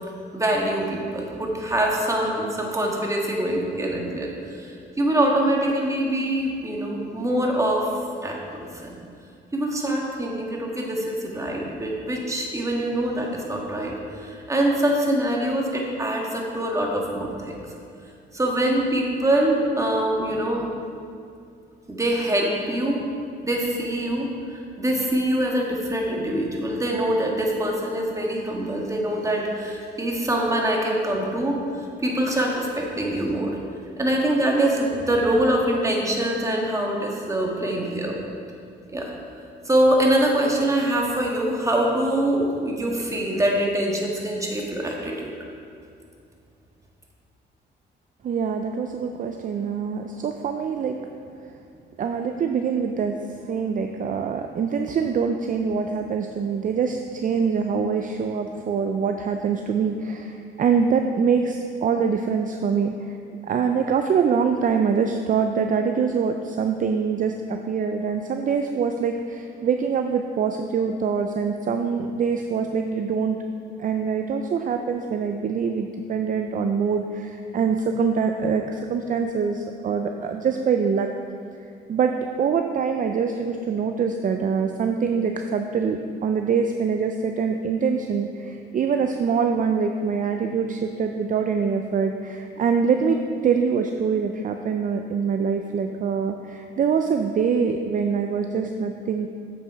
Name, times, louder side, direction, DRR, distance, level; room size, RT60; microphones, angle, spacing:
voice 1, 0.3-7.9 8.2-9.0 9.5-17.6 18.3-20.7 21.9-23.0 23.4-24.3 24.8-33.6 34.0-38.2 38.9-39.1 39.6-45.4, right 1 dB, 15° right, -1 dB, 1.6 m, -24 dB
voice 2, 48.2-51.0 52.0-53.2 53.4-63.1 63.4-73.4 73.8-81.1 81.9-93.2 93.4-99.3, right 6 dB, 40° right, 5 dB, 0.5 m, -24 dB
7.6 x 6.8 x 4.7 m, 2.4 s
cardioid pair, 90°, 20 cm